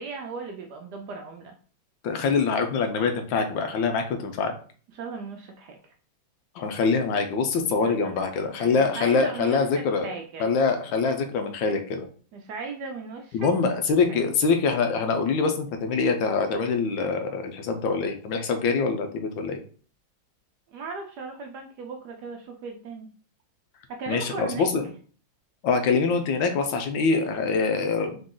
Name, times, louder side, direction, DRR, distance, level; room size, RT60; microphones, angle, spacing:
voice 1, 0.0-1.5 4.9-5.8 7.6-8.2 8.6-9.6 10.0-10.5 12.3-13.5 14.1-14.2 20.7-23.1 23.9-24.7, right 4 dB, 70° right, 3 dB, 1.0 m, -37 dB
voice 2, 2.0-4.5 6.6-10.1 10.4-12.0 13.3-19.6 24.1-24.8 25.6-28.2, left 4 dB, 75° left, 6 dB, 1.3 m, -24 dB
4.0 x 2.9 x 3.7 m, 0.42 s
omnidirectional pair, 2.2 m